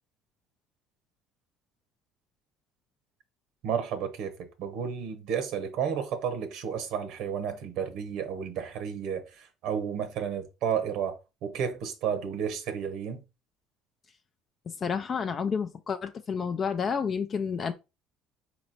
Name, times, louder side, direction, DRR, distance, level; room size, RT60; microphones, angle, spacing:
voice 1, 3.6-11.2 11.4-13.2, right 7 dB, 70° right, 1.0 m, -32 dB
voice 2, 14.7-17.7, left 6 dB, 35° left, 0.3 m, -30 dB
4.2 x 3.0 x 3.9 m
cardioid pair, 115°, 0 cm